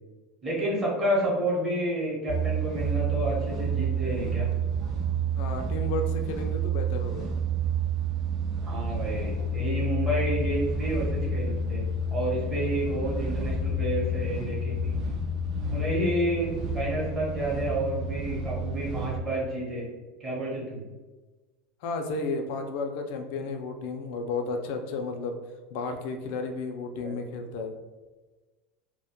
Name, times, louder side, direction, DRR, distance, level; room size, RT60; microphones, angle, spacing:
voice 1, 0.4-4.5 8.6-11.8 12.1-15.0 15.7-19.9 20.2-20.8 27.0-27.1, right 1 dB, 20° right, -6 dB, 0.9 m, -30 dB
sound 1, 2.3-19.2, right 2 dB, 45° right, 0.3 m, -29 dB
voice 2, 5.4-7.3 21.8-25.4 25.7-27.7, left 3 dB, 65° left, 4 dB, 0.3 m, -33 dB
2.1 x 2.0 x 2.8 m, 1.2 s
supercardioid pair, 155°, 0 cm